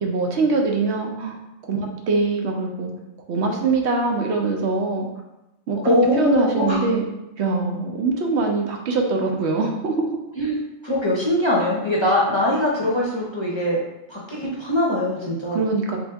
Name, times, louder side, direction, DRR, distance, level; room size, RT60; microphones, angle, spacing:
voice 1, 0.0-2.9 3.3-5.1 5.7-7.1 7.4-10.0 15.5-16.0, right 3 dB, 75° right, 2 dB, 0.9 m, -23 dB
voice 2, 5.8-6.8 10.4-10.6 10.8-13.8 14.1-15.7, left 1 dB, 35° left, -5 dB, 0.5 m, -22 dB
3.4 x 3.0 x 3.4 m, 0.91 s
omnidirectional pair, 1.2 m